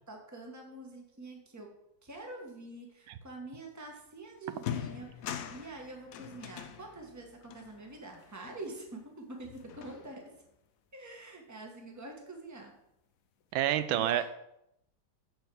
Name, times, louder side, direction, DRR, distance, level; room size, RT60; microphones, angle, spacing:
voice 1, 0.1-1.7 2.0-10.2 10.9-12.7 13.9-14.2, right 2 dB, 10° right, 2 dB, 1.2 m, -46 dB
sound 1, 4.0-4.1 4.5-9.1 9.4-10.4, left 9 dB, 70° left, 0.8 m, -43 dB
voice 2, 13.5-14.2, right 11 dB, 85° right, 12 dB, 1.4 m, -28 dB
7.8 x 4.5 x 6.9 m, 0.81 s
omnidirectional pair, 2.1 m